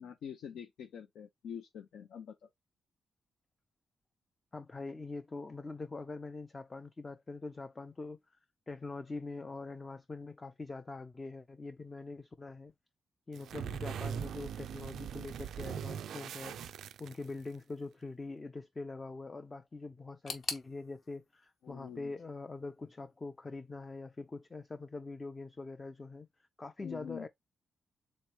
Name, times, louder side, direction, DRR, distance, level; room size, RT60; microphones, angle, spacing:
voice 1, 0.0-2.5 21.6-22.1 26.8-27.3, left 8 dB, 80° left, 0.5 m, -45 dB
voice 2, 4.5-8.2 8.7-12.7 13.3-16.6 17.0-26.3 26.6-27.3, left 3 dB, 20° left, 0.3 m, -43 dB
sound 1, 13.3-17.6, right 8 dB, 85° right, 0.3 m, -41 dB
sound 2, 20.3-23.1 23.4-24.2 24.5-24.6 25.4-25.5, left 4 dB, 50° left, 1.0 m, -45 dB
3.6 x 3.0 x 4.4 m
wide cardioid pair, 135°, 0 cm